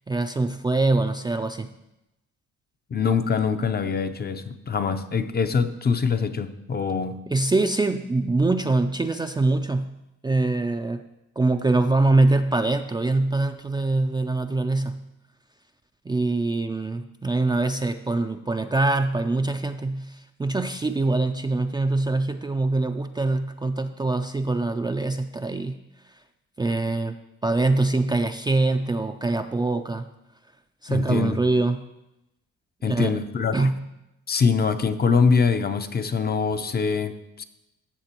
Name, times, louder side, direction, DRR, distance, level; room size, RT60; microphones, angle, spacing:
voice 1, 0.1-1.7 7.3-9.9 10.2-11.0 11.4-15.0 16.1-25.8 26.6-27.1 27.4-30.1 30.8-31.8 32.8-33.1 33.5-33.7, right 2 dB, 15° right, 6 dB, 0.4 m, -23 dB
voice 2, 2.9-7.2 30.9-31.4 32.8-33.7 34.3-37.4, left 5 dB, 30° left, 9 dB, 0.6 m, -24 dB
14.5 x 6.7 x 2.9 m, 0.91 s
cardioid pair, 90°, 30 cm